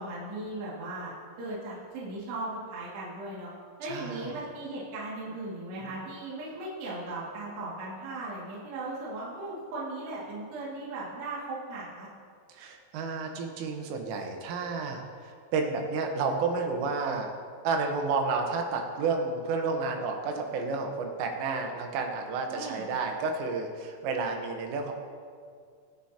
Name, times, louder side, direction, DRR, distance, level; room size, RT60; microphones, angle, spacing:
voice 1, 0.0-3.5 3.8-12.1 22.5-22.8, right 2 dB, 60° right, -8 dB, 4.2 m, -37 dB
voice 2, 3.9-4.3 12.5-17.3 17.7-24.9, right 4 dB, 80° right, 3 dB, 3.7 m, -31 dB
25.5 x 9.5 x 2.9 m, 2.2 s
omnidirectional pair, 5.8 m